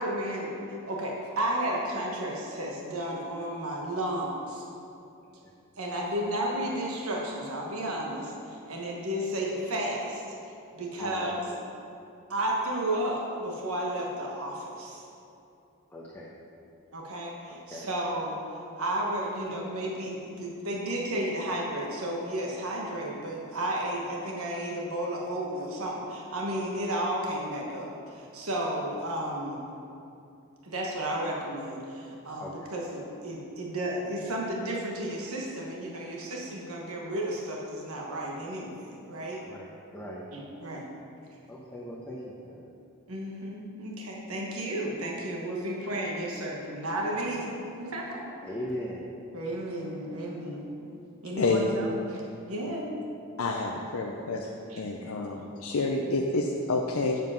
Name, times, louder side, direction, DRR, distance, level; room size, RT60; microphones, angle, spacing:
voice 1, 0.0-4.6 5.8-11.4 12.3-15.1 16.9-29.6 30.6-39.4 40.3-40.9 43.1-47.5 47.8-48.3 49.3-50.7 51.2-52.2 52.5-53.0 54.7-54.8, right 1 dB, 70° right, -2 dB, 1.2 m, -33 dB
voice 2, 11.0-11.3 15.9-16.3 17.5-17.9 32.4-32.7 39.4-39.7 39.9-40.3 41.5-42.6 48.4-49.0, equal, 10° left, -6 dB, 0.9 m, -39 dB
voice 3, 53.4-54.5 54.8-57.2, left 3 dB, 70° left, 0 dB, 0.6 m, -28 dB
7.5 x 7.4 x 5.5 m, 2.7 s
head